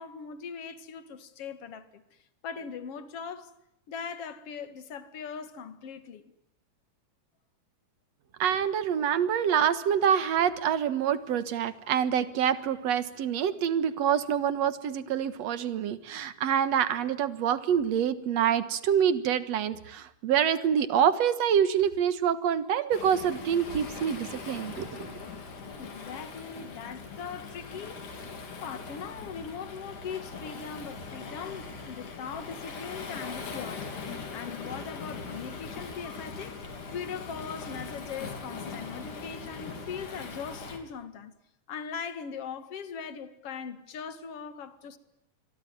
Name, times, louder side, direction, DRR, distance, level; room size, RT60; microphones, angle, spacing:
voice 1, 0.0-2.0 2.4-3.5 3.9-6.3 25.8-28.3 28.6-36.6 36.9-41.4 41.7-45.0, left 6 dB, 50° left, 2.6 m, -40 dB
voice 2, 8.4-25.1, right 8 dB, 60° right, 2.4 m, -26 dB
Waves surf, 22.9-40.8, left 4 dB, 80° left, 4.9 m, -41 dB
27.0 x 23.0 x 9.4 m
omnidirectional pair, 3.6 m